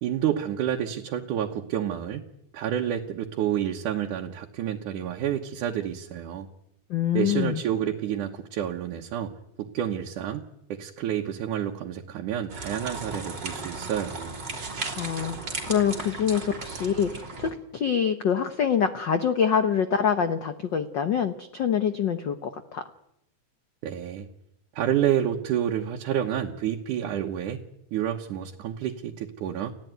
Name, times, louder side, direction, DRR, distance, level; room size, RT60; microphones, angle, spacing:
voice 1, 0.0-2.3 2.5-6.5 7.1-9.3 9.6-14.3 23.8-24.3 24.8-27.6 27.9-29.7, right 10 dB, 80° right, 1 dB, 2.7 m, -29 dB
voice 2, 6.9-7.6 14.9-22.8, left 8 dB, 75° left, 9 dB, 1.0 m, -25 dB
sound 1, 12.5-17.5, right 3 dB, 35° right, 3.6 m, -36 dB
29.5 x 15.5 x 9.3 m, 0.83 s
omnidirectional pair, 3.5 m